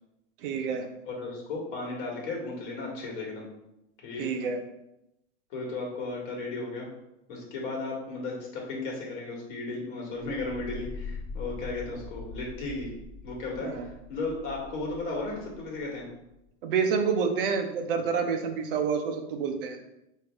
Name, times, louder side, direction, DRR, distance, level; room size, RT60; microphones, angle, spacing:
voice 1, 0.4-0.9 4.2-4.6 13.6-13.9 16.6-19.8, right 6 dB, 50° right, 5 dB, 0.7 m, -28 dB
voice 2, 1.0-3.5 4.0-4.3 5.5-6.9 7.3-12.9 13.2-16.1, left 3 dB, 45° left, -2 dB, 1.6 m, -35 dB
sound 1, 10.1-16.2, left 3 dB, 10° left, 0.4 m, -42 dB
5.1 x 2.7 x 3.4 m, 0.88 s
supercardioid pair, 165°, 34 cm